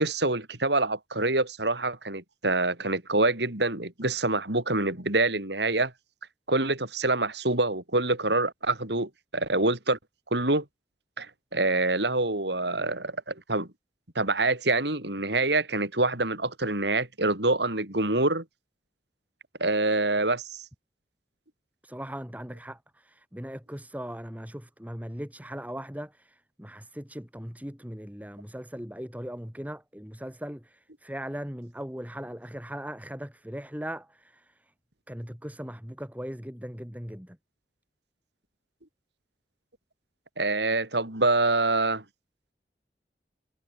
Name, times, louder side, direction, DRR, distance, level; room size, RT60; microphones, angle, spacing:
voice 1, 0.0-5.9 6.5-10.0 10.3-10.6 11.2-13.7 14.1-18.4 19.6-20.6 40.4-42.0, right 2 dB, 70° right, 4.6 m, -26 dB
voice 2, 21.8-34.7 35.1-37.4, equal, 10° right, 2.3 m, -39 dB
head